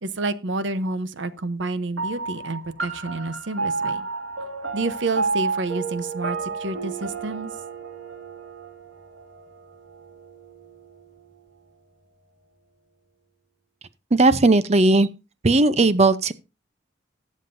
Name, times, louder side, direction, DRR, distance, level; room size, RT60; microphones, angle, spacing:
voice 1, 0.0-4.1 4.7-7.5, right 2 dB, 70° right, 0.9 m, -29 dB
sound 1, 2.0-10.8, right 4 dB, 90° right, 2.4 m, -31 dB
voice 2, 14.1-15.1 15.4-16.3, right 2 dB, 35° right, 0.6 m, -17 dB
19.5 x 7.4 x 2.7 m
head